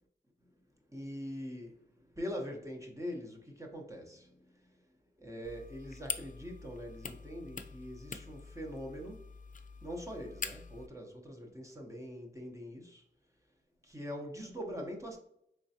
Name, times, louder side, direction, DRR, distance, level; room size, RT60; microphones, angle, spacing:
voice 1, 0.9-4.8 5.2-9.2 9.8-13.0 13.8-15.2, equal, 15° right, 0 dB, 0.8 m, -43 dB
sound 1, 5.4-10.9, left 5 dB, 45° left, 0.4 m, -44 dB
3.6 x 3.2 x 2.8 m, 0.75 s
cardioid pair, 55°, 18 cm